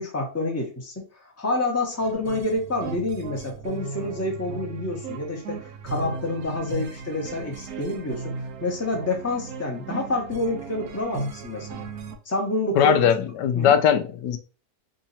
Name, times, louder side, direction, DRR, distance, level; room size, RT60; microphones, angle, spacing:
voice 1, 0.0-11.9 12.2-13.1 13.5-13.8, left 2 dB, 10° left, 1.0 m, -28 dB
sound 1, 2.0-12.2, right 4 dB, 65° right, 1.1 m, -36 dB
voice 2, 12.8-14.4, left 8 dB, 85° left, 1.2 m, -20 dB
3.9 x 2.8 x 4.1 m
omnidirectional pair, 1.8 m